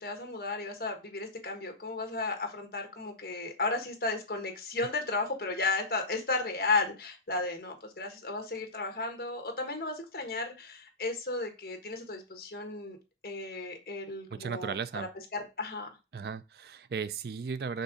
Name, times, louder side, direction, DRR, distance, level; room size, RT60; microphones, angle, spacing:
voice 1, 0.0-13.0 13.2-15.9, left 3 dB, 55° left, 1.4 m, -34 dB
voice 2, 14.3-15.1 16.1-17.8, right 5 dB, 60° right, 0.4 m, -36 dB
5.5 x 3.7 x 5.0 m
head